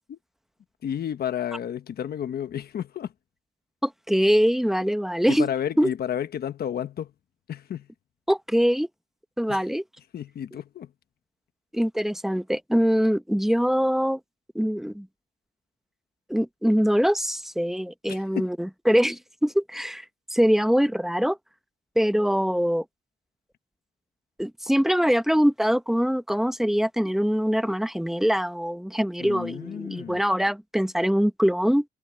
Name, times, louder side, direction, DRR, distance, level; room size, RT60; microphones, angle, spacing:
voice 1, 0.8-3.1 5.3-7.1 7.5-7.9 9.5-9.6 10.1-10.9 18.1-18.5 29.2-30.2, left 9 dB, 60° left, 1.2 m, -31 dB
voice 2, 3.8-5.5 5.8-5.9 8.3-8.9 9.4-9.8 11.7-14.2 14.5-15.1 16.3-20.0 20.3-21.4 22.0-22.8 24.4-31.8, equal, ahead, 0.9 m, -23 dB
cardioid pair, 145°, 18 cm